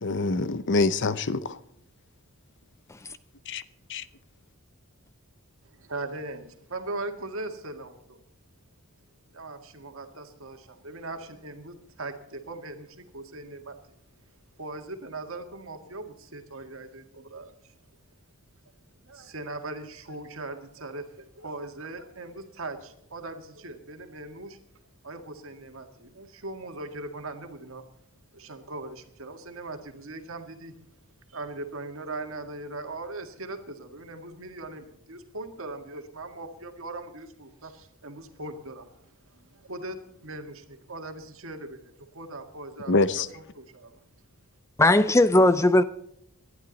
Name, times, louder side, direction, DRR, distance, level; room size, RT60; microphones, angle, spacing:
voice 1, 0.0-1.6 3.5-3.6 3.9-4.0 42.9-43.3, left 3 dB, 55° left, 0.7 m, -25 dB
voice 2, 5.6-8.2 9.3-14.0 14.6-17.8 19.0-24.6 25.0-27.8 28.3-30.7 31.3-44.0, right 2 dB, 65° right, 1.9 m, -40 dB
voice 3, 44.8-45.8, left 1 dB, 15° left, 0.4 m, -19 dB
19.0 x 12.0 x 4.1 m
head